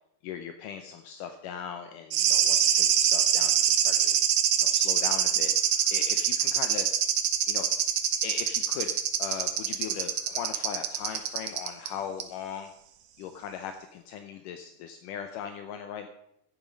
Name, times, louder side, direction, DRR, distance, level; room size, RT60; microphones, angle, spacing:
voice 1, 0.2-4.2 4.6-5.5 5.9-6.9 7.5-7.7 8.2-8.9 9.2-12.7 13.2-16.1, left 8 dB, 80° left, 7 dB, 2.3 m, -39 dB
sound 1, 2.1-11.9 12.2-12.3, right 9 dB, 65° right, 2.0 m, -25 dB
12.5 x 11.0 x 5.2 m, 0.76 s
omnidirectional pair, 3.9 m